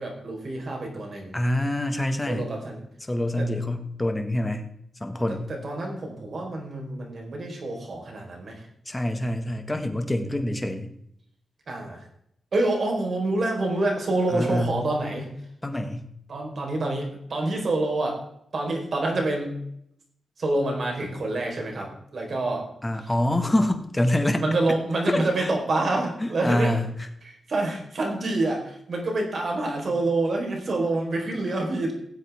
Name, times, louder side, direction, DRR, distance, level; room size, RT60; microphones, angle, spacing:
voice 1, 0.0-1.4 2.3-2.8 3.4-3.5 5.5-8.7 11.7-12.0 12.5-15.3 16.3-18.2 18.5-19.6 20.4-22.7 24.4-26.8 27.2-32.0, right 2 dB, 55° right, 1 dB, 4.2 m, -27 dB
voice 2, 1.3-2.4 3.1-4.7 5.0-5.5 8.9-10.9 14.3-14.8 15.6-16.1 22.8-24.4 25.1-25.5 26.2-27.1, left 1 dB, 15° left, 6 dB, 1.7 m, -26 dB
18.0 x 8.1 x 3.6 m, 0.72 s
cardioid pair, 85°, 0 cm